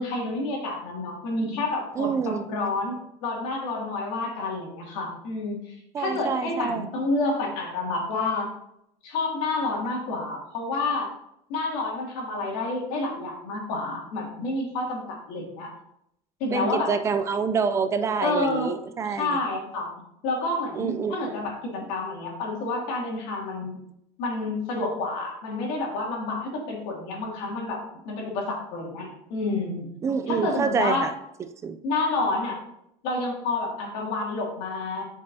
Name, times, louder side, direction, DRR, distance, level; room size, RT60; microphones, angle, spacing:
voice 1, 0.0-8.5 9.0-11.1 11.5-15.7 16.4-16.9 18.2-18.7 19.2-19.9 20.2-23.7 24.2-29.9 30.3-31.0 31.8-32.6 33.0-35.1, left 2 dB, 90° left, -2 dB, 2.4 m, -29 dB
voice 2, 2.0-2.5 5.9-6.9 16.5-19.4 20.7-21.2 30.0-31.1 31.6-31.8, right 6 dB, 25° right, 9 dB, 0.4 m, -26 dB
8.1 x 5.4 x 2.8 m, 0.78 s
cardioid pair, 165°, 13 cm